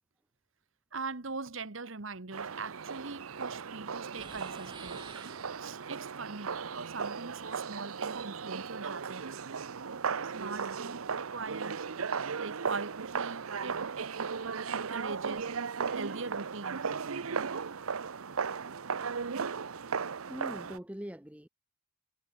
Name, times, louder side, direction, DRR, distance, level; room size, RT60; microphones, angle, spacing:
voice 1, 0.9-5.0 5.6-9.3 10.2-11.8 12.4-13.8 14.7-15.5 15.9-16.9, right 4 dB, 60° right, 1.4 m, -41 dB
sound 1, 2.3-20.8, right 5 dB, 80° right, 0.8 m, -36 dB
sound 2, 4.2-6.0, right 4 dB, 20° right, 1.5 m, -50 dB
voice 2, 20.3-21.5, equal, 5° right, 1.0 m, -42 dB
head